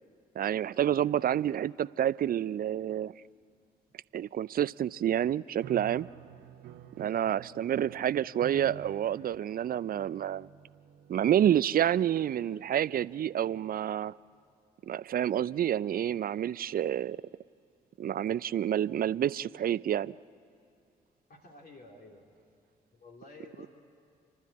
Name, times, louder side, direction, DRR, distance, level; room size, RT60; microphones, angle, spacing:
voice 1, 0.4-3.1 4.1-6.1 7.0-10.5 11.1-14.1 14.8-17.2 18.0-20.1, right 10 dB, 50° right, 20 dB, 0.5 m, -28 dB
sound 1, 5.6-13.9, right 10 dB, 70° right, 1.0 m, -50 dB
voice 2, 21.3-22.3 22.9-23.7, left 3 dB, 50° left, 0 dB, 3.0 m, -51 dB
29.0 x 12.0 x 8.4 m, 2.3 s
hypercardioid pair, 40°, 20 cm